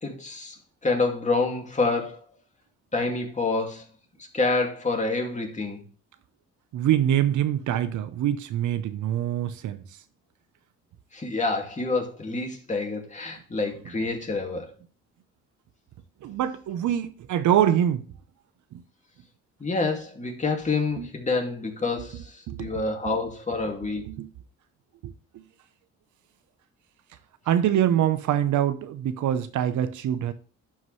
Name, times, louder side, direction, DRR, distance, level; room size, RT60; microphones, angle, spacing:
voice 1, 0.0-2.2 2.9-3.9 4.3-5.8 11.1-14.7 19.6-24.0, left 3 dB, 25° left, 2.3 m, -27 dB
voice 2, 6.7-9.8 16.2-18.0 21.0-21.1 22.5-23.1 24.1-24.3 25.0-25.1 27.5-30.3, right 10 dB, 75° right, 0.8 m, -24 dB
11.5 x 4.7 x 3.2 m
cardioid pair, 90°, 30 cm